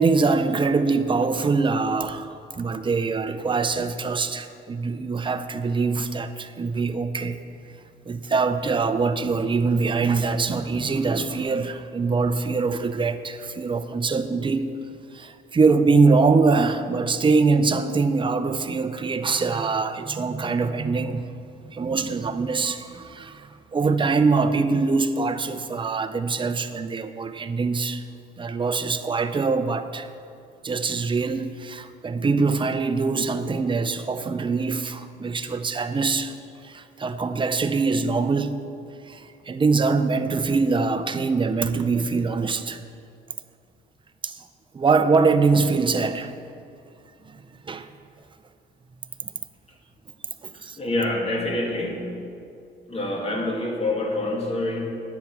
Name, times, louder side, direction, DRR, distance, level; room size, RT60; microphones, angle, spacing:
voice 1, 0.0-7.4 8.1-14.8 15.1-21.3 21.7-28.0 28.4-30.1 30.6-36.4 36.6-38.6 39.1-42.8 44.2-44.4 44.7-46.3 47.2-47.9 50.4-50.8, right 4 dB, 25° right, 10 dB, 0.6 m, -23 dB
voice 2, 50.5-52.1 52.9-54.9, left 2 dB, 30° left, -1 dB, 2.2 m, -26 dB
9.5 x 8.1 x 5.9 m, 2.4 s
cardioid pair, 90°, 20 cm